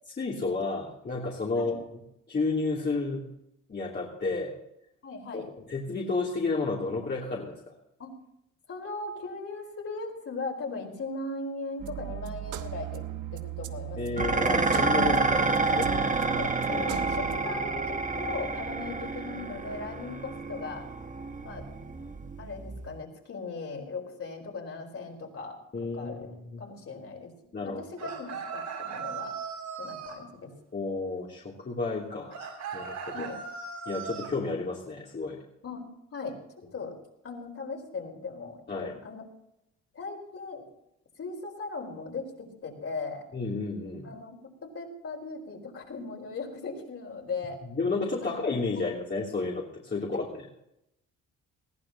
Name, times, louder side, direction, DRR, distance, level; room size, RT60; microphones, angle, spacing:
voice 1, 0.2-1.8 2.3-3.3 3.7-4.5 5.3-7.7 14.0-16.0 16.7-16.8 25.7-26.6 27.5-27.8 30.7-32.4 32.7-33.3 33.9-35.4 38.7-39.0 43.3-44.1 47.7-50.3, left 3 dB, 35° left, -4 dB, 3.0 m, -31 dB
voice 2, 5.0-5.5 8.0-8.1 8.7-13.1 13.3-14.0 15.7-20.9 21.4-21.6 22.4-25.6 25.9-27.3 27.6-29.4 29.8-30.5 33.1-33.4 35.6-35.8 36.1-37.0 37.2-39.3 39.9-40.6 41.2-43.3 44.0-47.6 48.2-48.4 48.7-48.9 50.1-50.2, left 3 dB, 50° left, 1 dB, 4.6 m, -38 dB
sound 1, 11.8-17.4, right 11 dB, 85° right, 1.1 m, -37 dB
Dishes pots and pans, 14.2-23.0, right 3 dB, 25° right, 1.2 m, -29 dB
sound 2, 28.0-30.2 32.3-34.3, right 6 dB, 70° right, 6.6 m, -38 dB
20.5 x 15.0 x 2.9 m, 0.81 s
cardioid pair, 90°, 30 cm